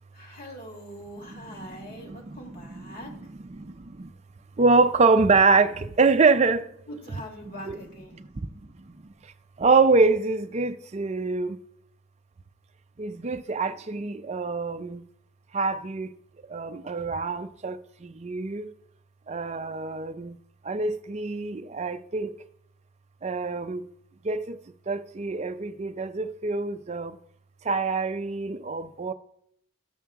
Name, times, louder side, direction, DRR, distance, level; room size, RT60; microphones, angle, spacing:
voice 1, 0.1-3.1 6.9-8.2, equal, 45° left, 1.8 m, -42 dB
voice 2, 1.2-4.1 4.6-6.6 7.6-7.8 8.1-9.3 9.6-11.6 13.0-15.1 15.5-16.1 16.5-18.7 19.3-20.4 20.6-22.4 23.2-23.9 24.2-24.6 24.9-27.2 27.6-29.1, right 4 dB, 30° right, 0.4 m, -25 dB
14.0 x 7.3 x 3.6 m
head